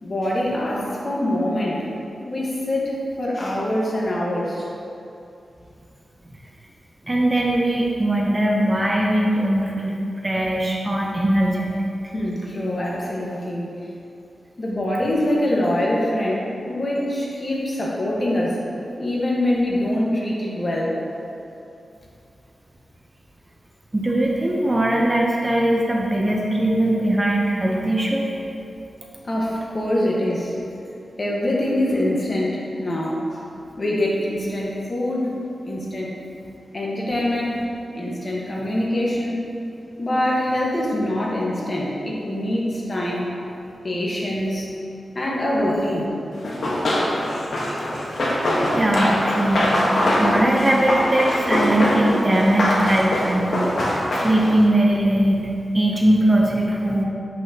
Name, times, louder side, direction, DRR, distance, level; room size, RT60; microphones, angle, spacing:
voice 1, 0.0-1.8 2.3-4.7 12.1-13.7 14.6-18.6 19.0-20.9 29.2-30.6 31.2-33.4 33.8-35.3 35.6-36.1 36.7-37.6 37.9-39.4 40.0-43.3 43.8-44.7 45.1-46.1, left 1 dB, 40° left, -4 dB, 1.4 m, -24 dB
voice 2, 7.0-10.0 10.2-11.7 23.9-28.3 48.7-57.0, right 1 dB, 25° right, -2 dB, 0.7 m, -20 dB
Run, 46.4-54.6, left 1 dB, 75° left, 1.2 m, -22 dB
7.4 x 6.1 x 2.9 m, 2.7 s
wide cardioid pair, 90°, 0 cm